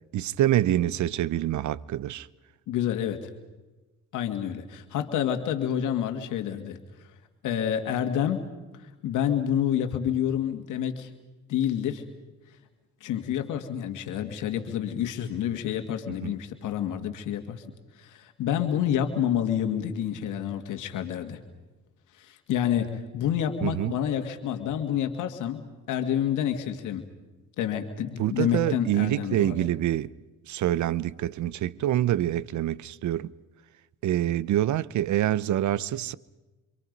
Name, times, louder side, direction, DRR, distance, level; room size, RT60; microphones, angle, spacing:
voice 1, 0.1-2.3 16.2-16.3 23.6-23.9 28.2-30.1 30.5-33.3 34.0-36.1, right 12 dB, 70° right, 0.8 m, -26 dB
voice 2, 2.7-3.3 4.1-6.8 7.4-8.4 9.0-11.1 11.5-12.0 13.0-17.6 18.0-21.4 22.2-27.0 27.6-29.5, left 9 dB, 85° left, 2.0 m, -28 dB
27.0 x 26.5 x 5.3 m
cardioid pair, 90°, 30 cm